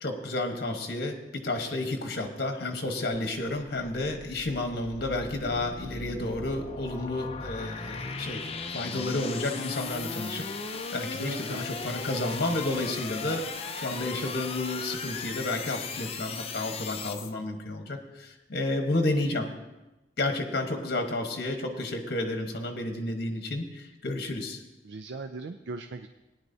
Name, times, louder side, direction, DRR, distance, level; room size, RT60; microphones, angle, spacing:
voice 1, 0.0-19.5 20.2-24.6, left 2 dB, 60° left, 4 dB, 1.2 m, -31 dB
sound 1, 3.1-17.3, left 4 dB, 35° left, 0.6 m, -37 dB
voice 2, 11.0-11.6 24.8-26.1, right 3 dB, 80° right, 8 dB, 0.5 m, -39 dB
17.5 x 10.5 x 2.7 m, 1.0 s
head